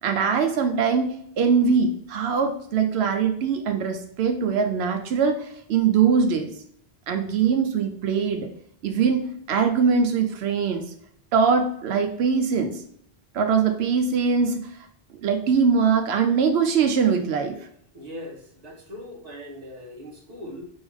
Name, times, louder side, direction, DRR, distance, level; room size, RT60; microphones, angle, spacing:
voice 1, 0.0-6.5 7.1-8.5 8.8-10.9 11.3-12.8 13.3-14.9 15.2-17.7, right 6 dB, 90° right, 5 dB, 0.9 m, -22 dB
voice 2, 17.9-20.6, left 1 dB, 40° right, -1 dB, 1.3 m, -40 dB
4.3 x 3.5 x 3.5 m, 0.68 s
omnidirectional pair, 1.0 m